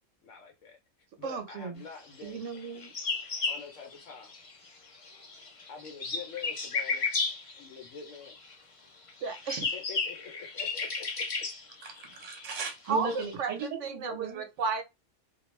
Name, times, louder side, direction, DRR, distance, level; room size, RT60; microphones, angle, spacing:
voice 1, 0.2-0.8 1.2-2.4 3.5-4.3 5.7-7.0 7.5-8.4 9.7-11.0, left 6 dB, 70° left, 1.0 m, -45 dB
voice 2, 1.2-1.8 2.2-2.9 9.2-9.7 12.9-14.8, right 5 dB, 70° right, 0.9 m, -34 dB
sound 1, 2.5-4.7 4.9-8.5 9.1-13.3, left 4 dB, 50° left, 0.4 m, -34 dB
voice 3, 11.8-14.4, right 4 dB, 35° right, 0.8 m, -37 dB
2.3 x 2.2 x 3.0 m
omnidirectional pair, 1.4 m